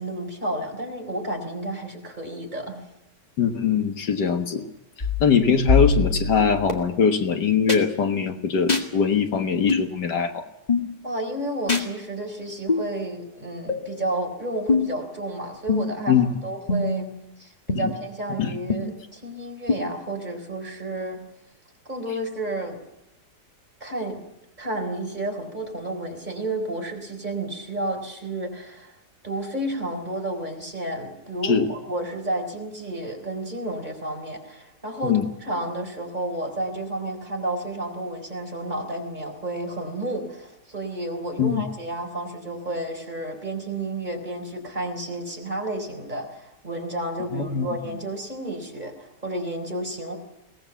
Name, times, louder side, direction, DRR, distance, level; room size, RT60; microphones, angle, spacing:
voice 1, 0.0-2.8 11.0-16.2 16.4-17.1 17.4-21.2 21.9-22.8 23.8-24.2 24.6-29.0 29.2-50.2, right 1 dB, 25° right, 2 dB, 4.1 m, -31 dB
voice 2, 3.4-4.7 5.2-10.4 16.1-16.3 17.8-17.9 18.4-18.5 31.4-31.7 35.0-35.2 41.4-41.6 47.3-47.7, left 6 dB, 75° left, 6 dB, 2.0 m, -22 dB
sound 1, 5.0-6.7 7.7-7.8 8.7-8.9 9.7-9.9 10.7-10.9 11.7-11.9 12.7-12.8 13.7-13.8 14.7-15.0 15.7-16.0 16.7-17.1 17.7-17.8 18.7-18.8 19.7-19.8, left 4 dB, 25° left, 2.2 m, -23 dB
22.5 x 18.5 x 7.1 m, 0.85 s
omnidirectional pair, 1.9 m